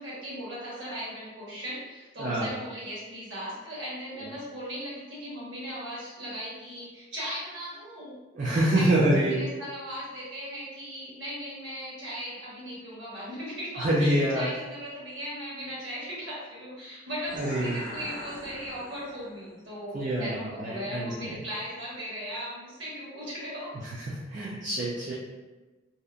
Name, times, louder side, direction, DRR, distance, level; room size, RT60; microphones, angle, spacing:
voice 1, 0.0-8.1 8.7-23.7, equal, 65° right, -7 dB, 1.1 m, -38 dB
voice 2, 2.2-2.5 4.2-4.3 8.3-9.4 13.8-14.5 17.3-17.8 19.9-21.3 24.3-25.1, right 1 dB, 40° right, -7 dB, 0.4 m, -26 dB
sound 1, 17.2-19.6, left 1 dB, 45° left, 0.4 m, -41 dB
2.7 x 2.0 x 2.4 m, 1.2 s
head